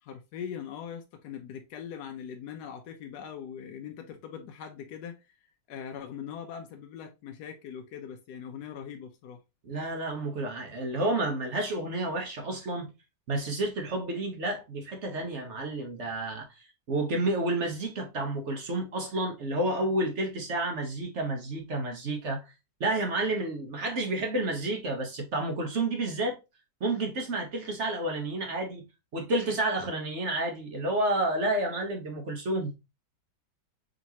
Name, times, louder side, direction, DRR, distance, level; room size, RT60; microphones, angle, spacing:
voice 1, 0.0-5.3 5.7-9.4, left 8 dB, 75° left, 1.1 m, -41 dB
voice 2, 9.6-12.9 13.3-22.5 22.8-26.4 26.8-28.8 29.1-32.7, right 2 dB, 50° right, 1.0 m, -30 dB
5.2 x 2.9 x 2.8 m
omnidirectional pair, 1.9 m